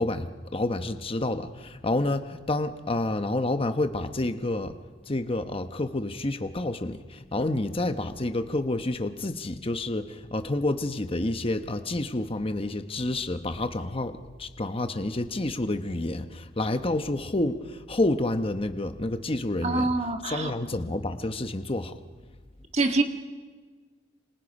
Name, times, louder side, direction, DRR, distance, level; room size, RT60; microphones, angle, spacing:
voice 1, 0.0-4.8 5.1-19.9 20.2-22.0, left 2 dB, 30° left, 8 dB, 1.0 m, -29 dB
voice 2, 19.6-20.5 22.7-23.0, right 3 dB, 35° right, 5 dB, 1.7 m, -25 dB
28.0 x 26.5 x 5.4 m, 1.4 s
head